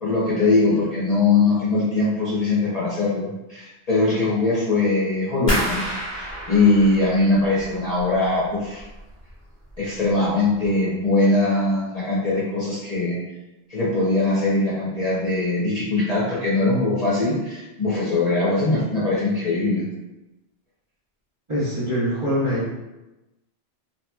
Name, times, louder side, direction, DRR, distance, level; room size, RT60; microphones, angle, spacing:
voice 1, 0.0-5.8 6.2-8.8 9.8-13.2 13.7-19.8, left 2 dB, 40° left, -8 dB, 0.7 m, -21 dB
sound 1, 5.5-8.3 8.6-9.3 9.7-10.1 10.5-10.7, right 1 dB, 15° left, 1.2 m, -29 dB
voice 2, 21.5-22.7, equal, 30° right, -10 dB, 0.8 m, -23 dB
2.9 x 2.8 x 2.2 m, 1.0 s
omnidirectional pair, 1.1 m